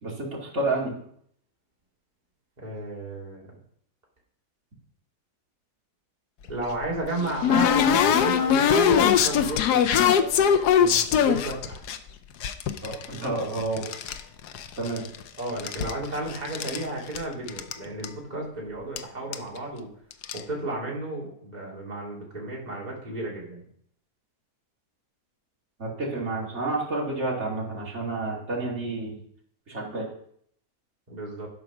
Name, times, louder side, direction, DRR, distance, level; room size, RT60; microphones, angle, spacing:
voice 1, 0.0-0.9 12.8-13.8 14.8-15.0 25.8-29.2 29.7-30.1, right 2 dB, 45° right, -4 dB, 2.9 m, -30 dB
voice 2, 2.6-3.5 6.5-10.1 10.8-11.8 13.1-13.3 15.4-19.9 20.3-23.6 31.1-31.5, right 2 dB, 25° right, -4 dB, 2.5 m, -33 dB
sound 1, 6.5-12.0 12.4-14.2 14.5-15.2 15.5-16.8 17.1-17.2 17.5-17.7 18.0-18.1 19.0-19.1 19.3-19.6 20.1-20.4, left 8 dB, 85° left, 1.3 m, -22 dB
11.5 x 4.9 x 5.9 m, 0.67 s
omnidirectional pair, 1.7 m